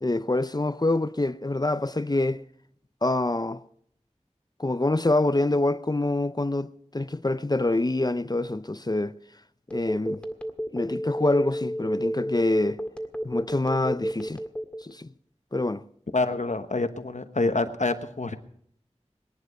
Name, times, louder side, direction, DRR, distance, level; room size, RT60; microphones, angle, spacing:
voice 1, 0.0-2.4 3.0-3.6 4.6-9.1 9.7-10.2 10.7-12.8 13.2-14.4 14.8-15.1 15.5-15.8, left 2 dB, 35° left, 0.5 m, -26 dB
Telephone, 9.7-14.9, equal, 10° left, 1.8 m, -30 dB
voice 2, 16.1-18.4, left 3 dB, 80° left, 1.1 m, -27 dB
20.0 x 11.5 x 5.3 m
wide cardioid pair, 45°, 12 cm